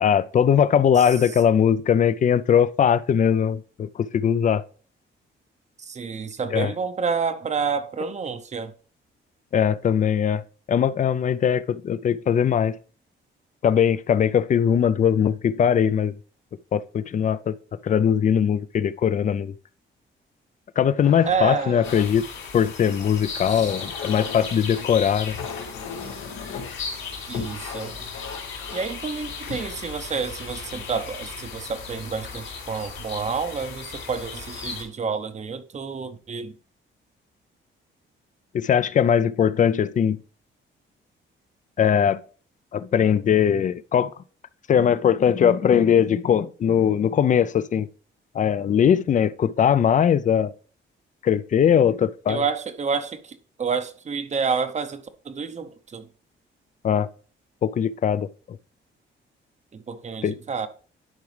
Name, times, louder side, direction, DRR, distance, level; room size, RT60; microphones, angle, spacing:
voice 1, 0.0-4.6 6.5-6.7 9.5-10.4 10.7-12.8 13.6-16.1 16.7-17.6 17.8-19.5 20.8-22.3 22.5-25.4 38.5-40.2 41.8-42.2 42.7-44.1 44.7-47.9 48.3-50.5 51.2-52.4 56.8-57.1 57.6-58.3 60.2-60.4, left 8 dB, 40° left, 0.4 m, -20 dB
voice 2, 5.8-8.7 21.3-21.8 23.5-23.7 27.3-27.9 28.7-36.5 52.3-56.1 59.7-60.7, right 5 dB, 35° right, 0.7 m, -29 dB
sound 1, 21.0-31.2 31.9-32.2 32.6-33.1, left 6 dB, 90° left, 1.4 m, -38 dB
sound 2, 21.8-34.8, left 5 dB, 70° left, 3.6 m, -37 dB
11.0 x 4.8 x 3.2 m
cardioid pair, 120°, 21 cm